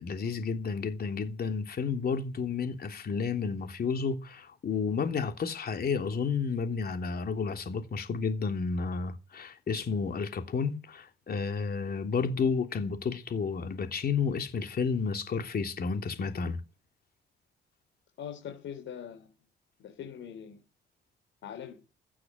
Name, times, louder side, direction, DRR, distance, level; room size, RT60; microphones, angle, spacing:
voice 1, 0.0-16.6, left 5 dB, 50° left, 3.2 m, -31 dB
voice 2, 18.2-19.3 19.8-20.6 21.4-21.8, left 8 dB, 75° left, 4.3 m, -42 dB
15.0 x 9.8 x 9.2 m
cardioid pair, 90°, 20 cm